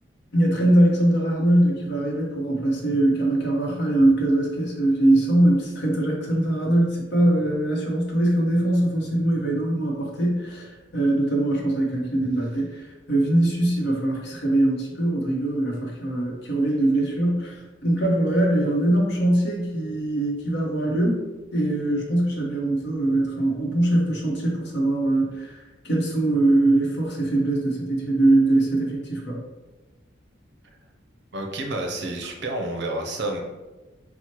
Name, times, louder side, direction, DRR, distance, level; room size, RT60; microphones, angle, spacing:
voice 1, 0.3-21.3 21.5-29.4, right 1 dB, 60° left, -1 dB, 0.8 m, -22 dB
voice 2, 31.3-33.4, right 2 dB, 60° right, 2 dB, 0.5 m, -29 dB
4.3 x 2.1 x 2.9 m, 1.1 s
head